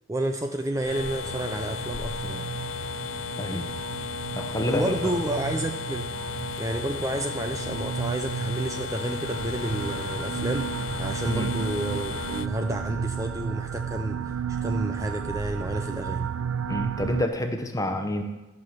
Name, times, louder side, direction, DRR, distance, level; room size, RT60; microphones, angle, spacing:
voice 1, 0.1-2.5 4.7-16.3, right 1 dB, 15° right, 6 dB, 0.4 m, -31 dB
sound 1, 0.8-12.5, left 6 dB, 65° left, 0.4 m, -35 dB
sound 2, 1.2-17.3, right 7 dB, 80° right, 0.5 m, -33 dB
voice 2, 3.4-3.7 4.3-5.1 11.3-11.5 16.7-18.2, left 1 dB, 15° left, 6 dB, 0.9 m, -28 dB
sound 3, 9.2-14.4, left 2 dB, 80° left, 1.3 m, -44 dB
14.0 x 5.6 x 7.5 m, 1.1 s
head